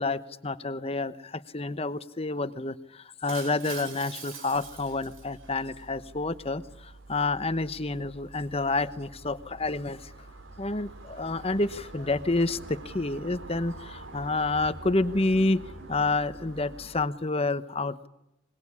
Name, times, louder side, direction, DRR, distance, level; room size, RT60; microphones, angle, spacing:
voice 1, 0.0-10.1 10.6-18.1, left 2 dB, 30° left, 13 dB, 1.0 m, -29 dB
Shatter, 3.3-5.7, right 5 dB, 90° right, 5.9 m, -43 dB
sound 1, 4.5-17.1, right 2 dB, 70° right, 2.6 m, -46 dB
25.0 x 21.0 x 9.8 m, 0.89 s
head